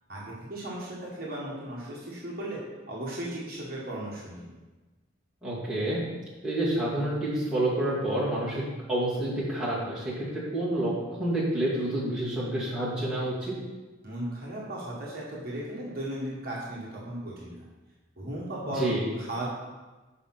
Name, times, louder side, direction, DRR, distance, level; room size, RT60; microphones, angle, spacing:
voice 1, 0.1-2.6 2.9-4.5 14.0-17.6 18.2-18.9 19.2-19.6, right 1 dB, 50° right, -5 dB, 1.5 m, -36 dB
voice 2, 5.4-6.0 6.4-8.6 8.9-13.5 18.8-19.0, right 1 dB, 5° right, -10 dB, 2.3 m, -28 dB
6.6 x 5.0 x 5.9 m, 1.2 s
head